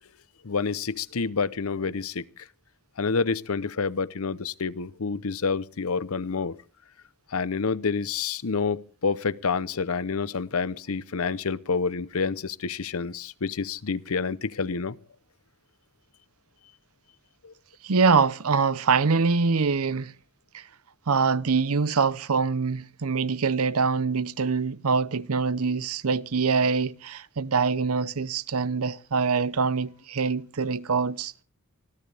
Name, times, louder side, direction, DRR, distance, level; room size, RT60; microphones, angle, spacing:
voice 1, 0.4-2.4 3.0-6.6 7.3-15.0 17.4-17.5, left 5 dB, 80° left, 0.8 m, -28 dB
voice 2, 17.8-20.1 20.5-20.6 21.1-31.4, right 5 dB, 90° right, 0.7 m, -24 dB
25.0 x 16.0 x 3.4 m
head